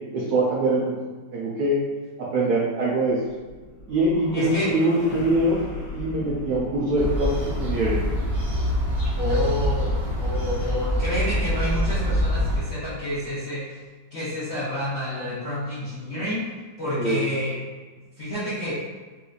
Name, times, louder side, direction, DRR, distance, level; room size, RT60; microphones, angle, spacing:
voice 1, 0.1-1.0 1.3-1.8 2.3-3.2 3.9-5.6 5.9-8.0 17.0-17.2, right 1 dB, 70° right, -6 dB, 0.9 m, -23 dB
sound 1, 3.2-9.4, left 1 dB, 75° left, 1.3 m, -39 dB
voice 2, 4.3-4.7 5.1-5.2 9.2-13.8 14.1-16.4 16.8-17.6 18.2-18.7, left 1 dB, 60° left, -11 dB, 0.7 m, -29 dB
sound 2, 6.9-12.6, equal, 30° right, 0.9 m, -25 dB
4.2 x 2.6 x 2.3 m, 1.4 s
omnidirectional pair, 2.1 m